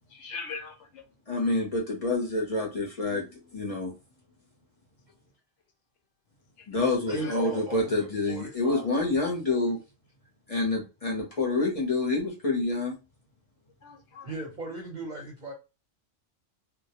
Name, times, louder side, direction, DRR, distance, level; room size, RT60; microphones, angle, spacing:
voice 1, 0.1-1.1 6.6-6.8 7.1-7.4 8.3-8.4 13.8-14.4, left 4 dB, 70° left, 0.8 m, -41 dB
voice 2, 1.3-3.9 6.7-9.8 10.5-13.0, left 2 dB, 40° left, 0.6 m, -27 dB
voice 3, 7.1-8.9 9.5-9.7 14.2-15.5, right 2 dB, 45° right, 0.7 m, -37 dB
2.2 x 2.0 x 2.8 m
omnidirectional pair, 1.3 m